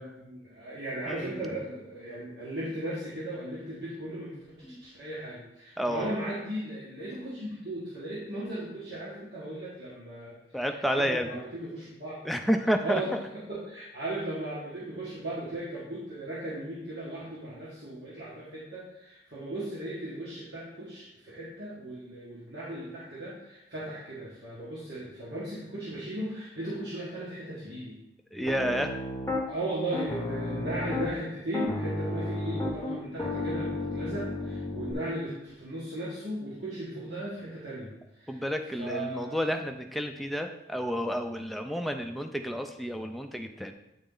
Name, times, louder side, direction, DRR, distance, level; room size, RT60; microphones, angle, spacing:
voice 1, 0.0-4.3 4.8-10.4 10.7-12.1 12.8-13.1 13.5-28.0 29.5-38.4 38.8-39.4, right 1 dB, 65° right, -8 dB, 1.6 m, -37 dB
voice 2, 1.1-1.4 4.6-4.9 5.8-6.1 10.5-11.4 12.2-13.2 28.3-28.9 38.3-43.7, equal, ahead, 4 dB, 0.4 m, -30 dB
Piano, 28.5-29.4 29.9-31.2 31.5-34.9, left 2 dB, 15° left, 0.9 m, -32 dB
8.8 x 4.1 x 3.8 m, 0.87 s
head